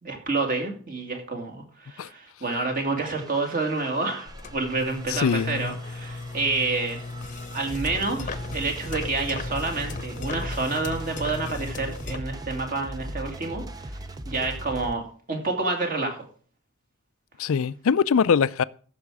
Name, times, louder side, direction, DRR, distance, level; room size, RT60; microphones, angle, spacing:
voice 1, 0.0-7.0 7.5-13.9 14.3-15.0 15.3-16.2, right 3 dB, 40° right, 2.3 m, -28 dB
cyberpunk trailer, 3.2-14.9, equal, 15° right, 0.6 m, -39 dB
sound 1, 4.3-12.2, left 3 dB, 35° left, 0.8 m, -36 dB
voice 2, 5.1-5.7 17.4-18.6, left 6 dB, 65° left, 0.4 m, -22 dB
14.5 x 6.3 x 4.8 m
head